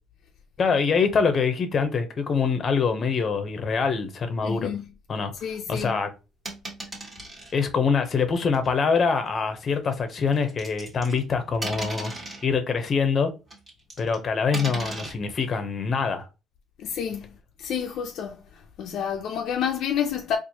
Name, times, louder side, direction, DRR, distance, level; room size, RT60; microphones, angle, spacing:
voice 1, 0.6-4.7 5.1-5.3 5.7-6.1 7.5-12.1 12.4-13.3 14.0-16.3, left 5 dB, 35° left, 0.7 m, -24 dB
voice 2, 4.4-4.9 5.4-6.0 16.8-20.4, left 8 dB, 60° left, 0.4 m, -30 dB
sound 1, 6.4-7.5 8.5-8.7 10.1-11.2 11.6-12.5 13.5-14.2 14.5-15.1, right 2 dB, 25° right, 1.5 m, -35 dB
4.3 x 2.5 x 2.8 m
cardioid pair, 140°, 0 cm